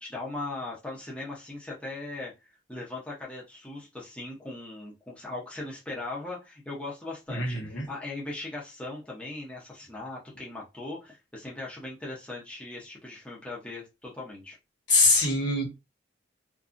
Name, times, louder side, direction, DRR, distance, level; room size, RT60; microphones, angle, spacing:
voice 1, 0.0-2.3 2.7-14.6, left 2 dB, 5° left, 0.7 m, -39 dB
voice 2, 7.3-7.9 14.9-15.6, left 3 dB, 65° left, 1.2 m, -23 dB
2.6 x 2.4 x 2.4 m
head